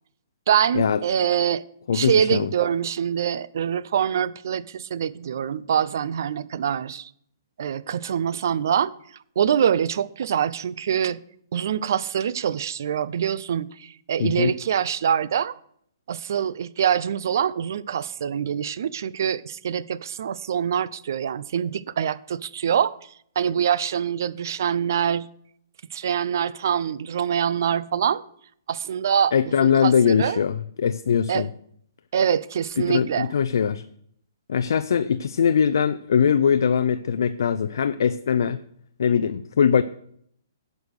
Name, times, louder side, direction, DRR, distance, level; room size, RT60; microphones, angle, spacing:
voice 1, 0.5-1.6 1.9-7.1 7.6-8.9 9.4-11.2 11.5-15.5 16.1-22.9 23.4-25.3 25.9-28.2 28.7-29.3 29.6-30.4 31.3-31.4 32.1-33.3, right 8 dB, 55° right, 0.5 m, -24 dB
voice 2, 1.9-2.5 14.2-14.5 29.3-31.5 32.8-33.8 34.5-38.6 39.0-39.8, left 7 dB, 70° left, 0.5 m, -21 dB
11.0 x 5.3 x 6.4 m
hypercardioid pair, 165°, 2 cm